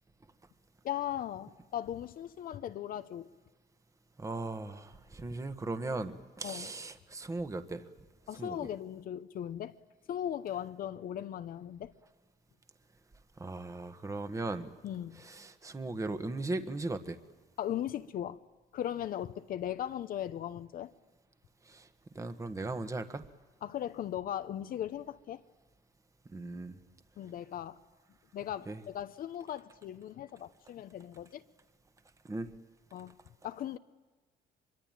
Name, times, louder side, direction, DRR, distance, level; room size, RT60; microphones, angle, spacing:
voice 1, 0.8-3.3 6.4-6.7 8.3-9.7 10.1-11.9 14.8-15.2 17.6-18.4 18.7-20.9 23.6-25.4 27.2-27.8 28.3-31.4 32.9-33.1 33.4-33.8, left 11 dB, 55° left, 0.9 m, -38 dB
voice 2, 4.2-7.8 8.4-8.7 13.4-14.7 15.1-17.2 21.6-21.9 22.1-23.2 26.3-26.8 28.7-28.8 32.2-32.5, right 2 dB, 20° right, 1.5 m, -38 dB
24.5 x 23.0 x 9.1 m
cardioid pair, 110°, 17 cm